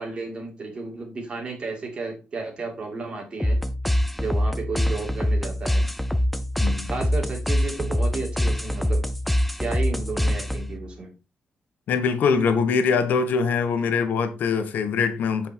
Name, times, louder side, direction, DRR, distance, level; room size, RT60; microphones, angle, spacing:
voice 1, 0.0-3.6 4.2-5.9 6.9-9.0 9.6-11.1, right 3 dB, 35° right, 2.5 m, -33 dB
sound 1, 3.4-10.8, equal, ahead, 0.5 m, -24 dB
voice 2, 6.6-6.9 11.9-15.5, left 5 dB, 70° left, 1.3 m, -23 dB
8.0 x 5.2 x 4.5 m
wide cardioid pair, 175°, 3 cm